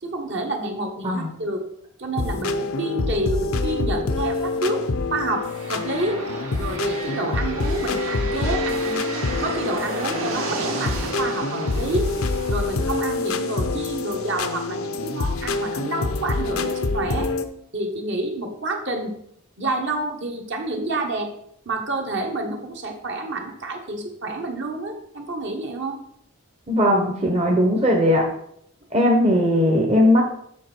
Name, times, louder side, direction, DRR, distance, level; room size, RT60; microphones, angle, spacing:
voice 1, 0.0-1.6 2.0-4.8 5.1-6.2 6.6-9.0 9.4-12.1 12.5-17.3 17.7-19.1 19.6-21.3 21.6-26.0, right 2 dB, 55° right, 3 dB, 1.4 m, -28 dB
sound 1, 2.2-17.4, left 3 dB, 70° left, 0.7 m, -26 dB
sound 2, 5.2-15.1, right 3 dB, 70° right, 2.1 m, -34 dB
voice 2, 26.7-28.3 28.9-30.2, left 1 dB, 30° right, 0 dB, 1.0 m, -18 dB
7.5 x 6.3 x 4.5 m, 0.71 s
head